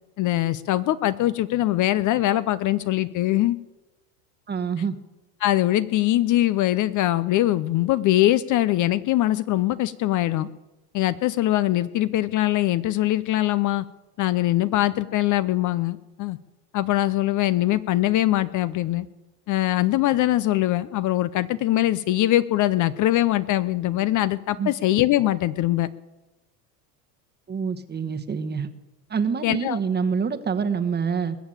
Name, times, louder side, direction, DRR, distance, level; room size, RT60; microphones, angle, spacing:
voice 1, 0.2-3.6 5.4-10.5 10.9-13.8 14.2-16.4 16.7-19.1 19.5-25.9 29.4-29.8, left 15 dB, 40° left, 15 dB, 0.6 m, -22 dB
voice 2, 4.5-5.0 24.6-24.7 27.5-28.7 29.1-31.4, right 6 dB, 20° right, 9 dB, 1.2 m, -26 dB
21.5 x 7.2 x 8.9 m, 1.1 s
supercardioid pair, 110°, 47 cm